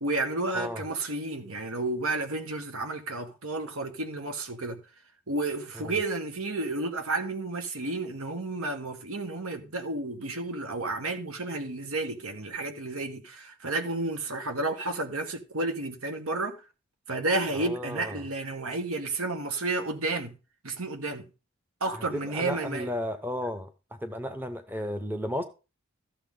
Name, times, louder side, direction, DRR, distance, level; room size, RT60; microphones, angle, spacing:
voice 1, 0.0-4.8 5.3-16.6 17.1-20.3 20.6-21.2 21.8-22.9, right 2 dB, 80° right, 1.7 m, -31 dB
voice 2, 17.5-18.2 22.1-23.7 24.0-25.4, left 1 dB, 10° right, 0.8 m, -33 dB
14.0 x 7.0 x 3.8 m
head